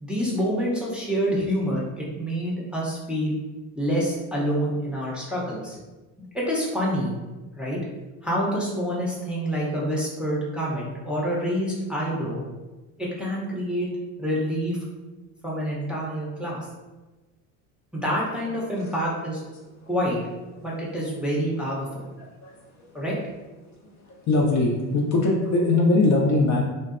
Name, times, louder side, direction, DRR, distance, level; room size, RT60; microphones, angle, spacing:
voice 1, 0.0-3.4 3.8-5.8 6.3-7.1 7.6-7.8 8.2-12.4 13.0-13.9 14.2-14.8 15.4-16.7 17.9-19.4 19.9-20.2 20.6-22.0 22.9-23.1, equal, 5° right, -6 dB, 0.6 m, -27 dB
voice 2, 24.3-26.6, left 2 dB, 40° left, -2 dB, 0.6 m, -21 dB
2.5 x 2.1 x 2.4 m, 1.2 s
hypercardioid pair, 75°, 41 cm